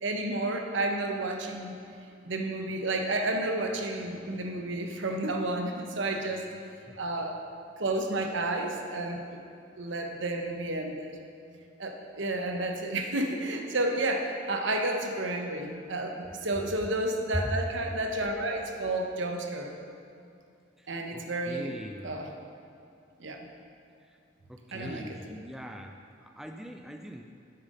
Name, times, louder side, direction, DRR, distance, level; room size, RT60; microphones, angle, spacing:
voice 1, 0.0-1.7 2.2-6.4 7.0-7.4 7.8-9.4 9.8-11.1 11.8-19.7 20.9-21.7 22.0-22.3 23.2-23.4 24.7-25.2, right 2 dB, 75° right, 3 dB, 1.0 m, -31 dB
voice 2, 20.8-22.2 24.0-24.2 24.5-27.2, equal, ahead, 4 dB, 0.3 m, -39 dB
8.7 x 7.4 x 5.3 m, 2.4 s
head